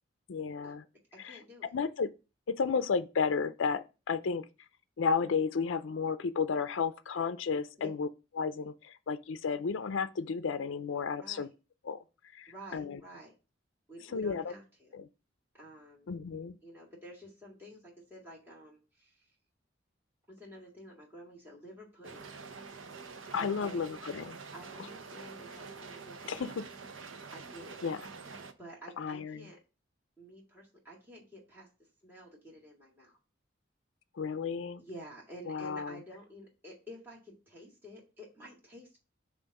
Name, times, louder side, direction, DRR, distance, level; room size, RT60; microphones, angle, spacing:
voice 1, 0.3-0.8 1.2-1.4 1.7-2.1 2.5-4.4 5.0-8.1 8.4-11.5 11.8-12.0 12.3-13.0 14.1-14.5 14.9-15.1 16.1-16.6 23.3-24.4 26.3-26.6 27.8-28.0 29.0-29.4 34.2-34.8 35.5-36.0, left 5 dB, 75° left, 0.4 m, -33 dB
voice 2, 1.2-1.7 7.8-7.9 11.2-11.5 12.5-13.3 13.9-14.9 15.5-16.1 16.6-19.3 20.3-22.3 23.4-23.8 24.5-26.5 27.3-27.8 28.6-29.6 30.2-31.7 32.0-33.2 34.8-39.0, equal, 10° right, 1.9 m, -50 dB
sound 1, 22.0-28.5, right 4 dB, 80° right, 0.7 m, -47 dB
7.1 x 2.5 x 5.2 m
head